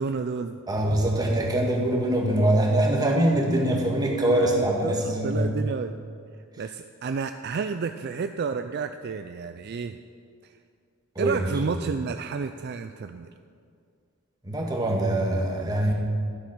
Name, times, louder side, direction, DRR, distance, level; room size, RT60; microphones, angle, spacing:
voice 1, 0.0-0.6 0.9-1.1 4.8-6.0 6.6-10.0 10.4-10.5 11.2-13.3, right 5 dB, 50° right, 8 dB, 0.4 m, -31 dB
voice 2, 0.7-5.6 11.1-11.8 14.4-15.9, right 1 dB, 20° right, -1 dB, 1.7 m, -23 dB
12.5 x 7.9 x 6.1 m, 2.3 s
head